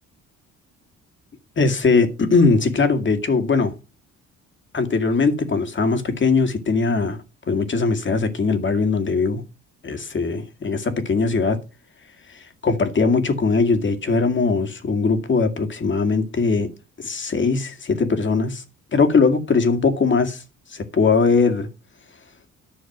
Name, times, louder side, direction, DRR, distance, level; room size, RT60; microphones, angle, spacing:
voice 1, 1.6-3.7 4.7-7.2 7.5-9.4 9.8-11.6 12.3-16.7 17.0-18.6 18.9-20.4 20.7-21.7, left 4 dB, 40° left, 2.2 m, -20 dB
11.0 x 6.3 x 6.1 m
cardioid pair, 90°, 30 cm